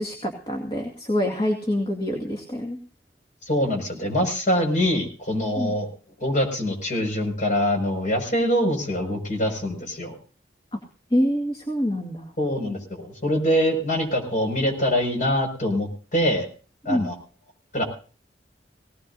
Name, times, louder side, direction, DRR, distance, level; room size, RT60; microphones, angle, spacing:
voice 1, 0.0-2.8 5.6-5.7 10.7-10.8 11.1-12.3 16.9-17.1, equal, 30° left, 2 dB, 2.2 m, -26 dB
voice 2, 3.5-5.9 6.2-10.1 12.4-16.5 16.8-17.1 17.7-17.8, equal, 45° left, 3 dB, 6.0 m, -24 dB
19.0 x 19.0 x 2.8 m, 0.38 s
head